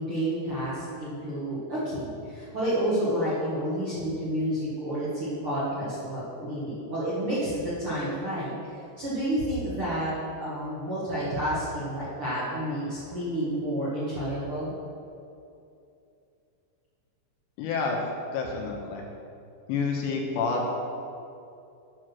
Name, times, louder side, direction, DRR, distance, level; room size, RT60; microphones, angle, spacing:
voice 1, 0.0-10.1 10.4-14.7, right 1 dB, 45° right, -10 dB, 2.0 m, -30 dB
voice 2, 17.6-18.0 18.3-19.1 19.7-20.7, left 4 dB, 80° left, 0 dB, 3.2 m, -28 dB
8.9 x 6.4 x 6.2 m, 2.6 s
omnidirectional pair, 5.2 m